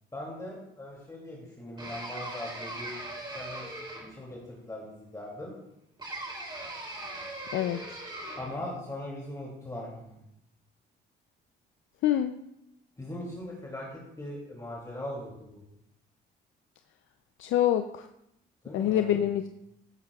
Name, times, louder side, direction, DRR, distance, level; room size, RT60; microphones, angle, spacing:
voice 1, 0.1-2.9 3.3-3.8 4.1-5.5 8.4-10.1 13.0-15.6 18.6-19.3, left 1 dB, 15° left, -4 dB, 2.6 m, -40 dB
sound 1, 1.8-4.3 6.0-8.6, right 1 dB, 25° right, 2.9 m, -40 dB
voice 2, 12.0-12.4 17.4-18.0 18.7-19.5, left 11 dB, 80° left, 8 dB, 0.5 m, -25 dB
15.0 x 9.6 x 2.3 m, 0.82 s
cardioid pair, 90°, 20 cm